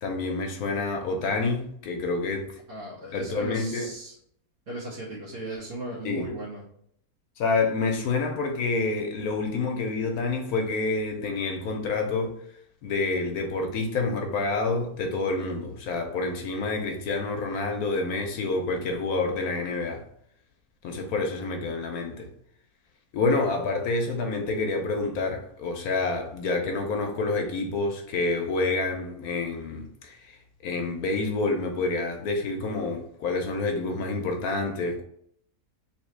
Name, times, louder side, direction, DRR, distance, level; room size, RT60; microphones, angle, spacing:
voice 1, 0.0-2.6 3.1-3.9 6.0-6.3 7.4-12.3 12.8-20.0 20.8-22.3 23.1-35.0, left 3 dB, 75° left, 1.1 m, -28 dB
voice 2, 2.7-4.2 4.7-6.6, right 1 dB, 50° right, 1.5 m, -37 dB
3.6 x 3.0 x 3.2 m
omnidirectional pair, 1.7 m